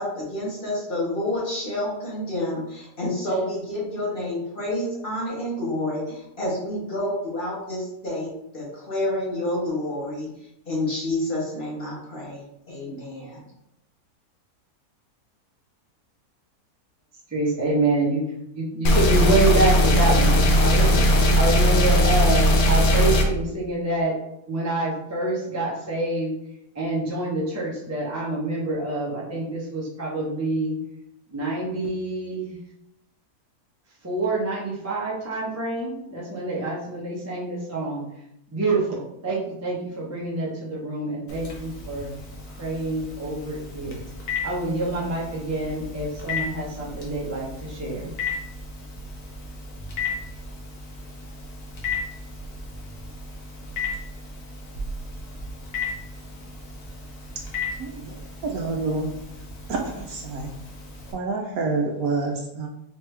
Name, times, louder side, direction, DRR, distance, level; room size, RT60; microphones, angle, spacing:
voice 1, 0.0-10.3 10.6-13.4, left 1 dB, 35° left, -5 dB, 1.4 m, -29 dB
voice 2, 17.3-18.2 18.5-24.2 24.5-26.3 26.7-30.7 31.3-32.6 34.0-38.0 38.5-42.1 42.5-44.0 44.4-48.1, right 2 dB, 15° right, -5 dB, 0.7 m, -27 dB
sound 1, 18.8-23.2, equal, 80° left, 0.4 m, -18 dB
Telephone, 41.3-61.1, left 4 dB, 60° left, 1.3 m, -35 dB
voice 3, 57.8-58.1 58.4-59.1 59.7-60.5 61.1-62.7, right 3 dB, 70° right, 1 dB, 1.0 m, -27 dB
4.1 x 3.2 x 3.3 m, 0.82 s
omnidirectional pair, 1.7 m